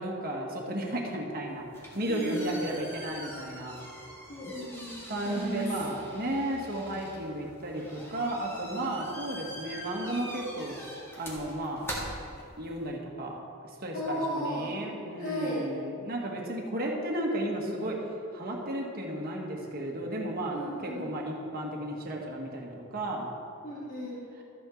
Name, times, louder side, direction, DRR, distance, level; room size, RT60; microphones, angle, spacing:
voice 1, 0.0-3.8 5.1-10.8 11.2-11.9 12.6-13.4 13.8-18.0 18.3-23.3, right 1 dB, 45° right, -1 dB, 1.5 m, -34 dB
sound 1, 1.5-12.9, equal, 10° left, 1.6 m, -44 dB
voice 2, 2.1-2.6 4.3-5.7 13.9-14.7 15.2-15.6 20.5-21.0 23.6-24.2, equal, 35° left, -8 dB, 2.1 m, -35 dB
13.0 x 8.7 x 3.9 m, 2.5 s
head